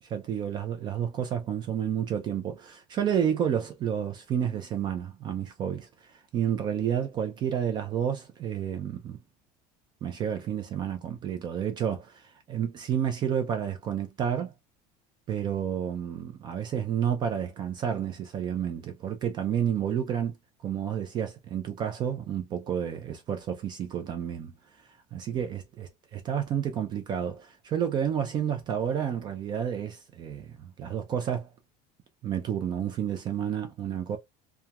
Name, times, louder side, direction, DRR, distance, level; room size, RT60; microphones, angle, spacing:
voice 1, 0.0-9.2 10.0-14.5 15.3-20.4 20.6-24.5 25.1-31.5 32.2-34.2, right 9 dB, 25° right, 0.3 m, -30 dB
2.8 x 2.2 x 2.2 m
cardioid pair, 175°, 18 cm